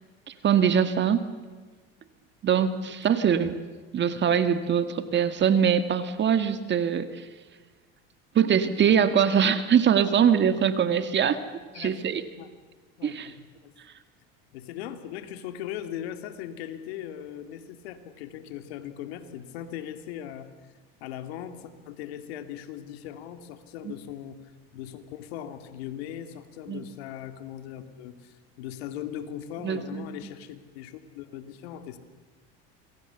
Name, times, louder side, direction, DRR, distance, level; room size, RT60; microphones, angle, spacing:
voice 1, 0.3-1.2 2.4-3.6 3.9-7.3 8.4-11.4 11.8-12.2 13.0-13.3 23.9-24.0 26.7-26.8 29.6-30.1, right 8 dB, 35° right, 10 dB, 1.9 m, -23 dB
voice 2, 2.9-3.2 11.7-12.0 12.4-12.5 13.0-13.7 14.5-20.5 21.0-24.4 24.7-32.0, left 10 dB, 85° left, 8 dB, 2.5 m, -39 dB
27.5 x 22.5 x 7.1 m, 1.3 s
supercardioid pair, 110°, 30 cm